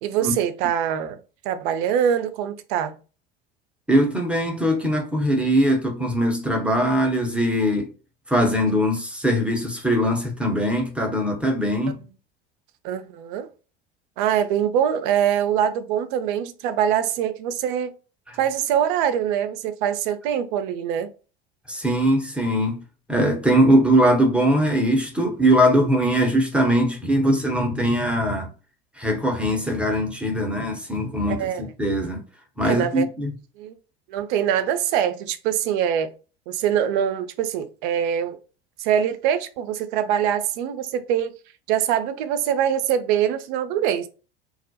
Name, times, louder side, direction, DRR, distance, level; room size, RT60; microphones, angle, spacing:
voice 1, 0.0-3.0 11.9-12.0 12.8-13.5 14.2-17.9 18.4-21.1 31.3-31.6 32.6-33.1 33.6-33.7 34.1-36.1 36.5-38.4 38.8-41.3 41.7-44.1, right 9 dB, 55° right, 0.5 m, -23 dB
voice 2, 3.9-7.9 8.3-12.0 18.3-18.4 21.7-22.8 23.1-28.5 29.0-32.2 32.6-33.3, equal, 5° right, 0.7 m, -21 dB
2.3 x 2.1 x 2.7 m
figure-of-eight pair, 75°, 31 cm